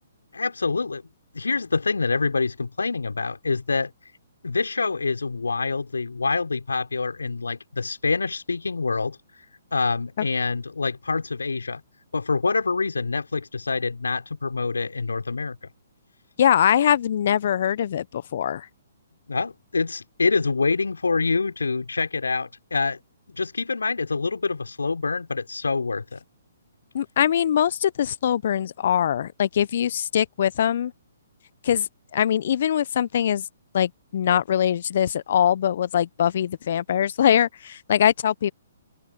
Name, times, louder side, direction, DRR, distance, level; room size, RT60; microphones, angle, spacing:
voice 1, 0.3-1.0 1.3-3.9 4.4-9.2 9.7-11.8 12.1-15.6 19.3-23.0 23.3-26.2, left 4 dB, 75° left, 4.6 m, -26 dB
voice 2, 16.4-18.7 26.9-30.9 31.6-33.4 33.7-38.5, left 9 dB, 50° left, 1.1 m, -22 dB
open air
figure-of-eight pair, 125°, 0 cm